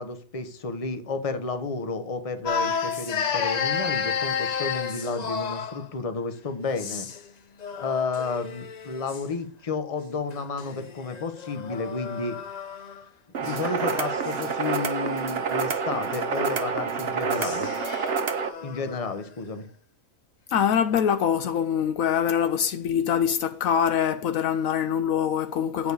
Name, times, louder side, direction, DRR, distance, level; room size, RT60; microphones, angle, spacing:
voice 1, 0.0-7.1 7.7-12.4 13.4-17.7 18.6-19.7, left 4 dB, 25° left, 1.0 m, -31 dB
sound 1, 2.4-5.9 6.7-7.3 7.6-9.3 10.3-13.1 13.4-19.1, left 6 dB, 50° left, 0.5 m, -33 dB
sound 2, 13.3-18.5, right 6 dB, 50° right, 1.1 m, -28 dB
voice 2, 20.5-25.9, left 8 dB, 70° left, 1.0 m, -24 dB
8.7 x 4.8 x 7.0 m
omnidirectional pair, 1.5 m